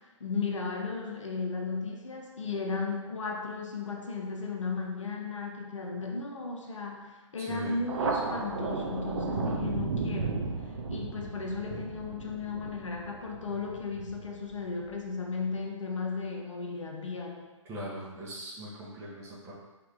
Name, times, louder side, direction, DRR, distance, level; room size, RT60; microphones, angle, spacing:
voice 1, 0.2-10.4 10.9-17.4, left 4 dB, 70° left, 2 dB, 0.8 m, -35 dB
voice 2, 7.4-7.8 8.2-8.6 17.7-19.5, equal, 15° right, -7 dB, 1.1 m, -41 dB
Thunder, 7.9-14.9, right 4 dB, 55° right, 0.6 m, -34 dB
4.8 x 3.0 x 3.5 m, 1.2 s
figure-of-eight pair, 135°, 17 cm